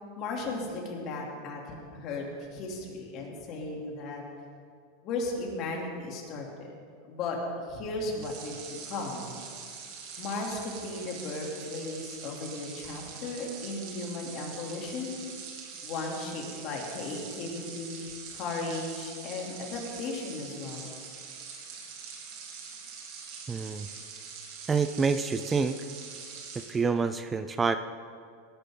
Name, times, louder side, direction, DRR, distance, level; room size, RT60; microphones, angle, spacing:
voice 1, 0.0-4.2 5.0-6.7 7.1-7.4 7.7-8.5 8.9-9.3 10.2-15.1 15.8-20.9, left 3 dB, 45° left, -1 dB, 3.1 m, -36 dB
sound 1, 8.1-26.8, right 5 dB, 60° right, 2.9 m, -44 dB
voice 2, 23.5-23.9 24.7-25.8 26.7-27.8, right 5 dB, 20° right, 11 dB, 0.5 m, -27 dB
18.5 x 11.5 x 3.9 m, 2.2 s
supercardioid pair, 125°, 0 cm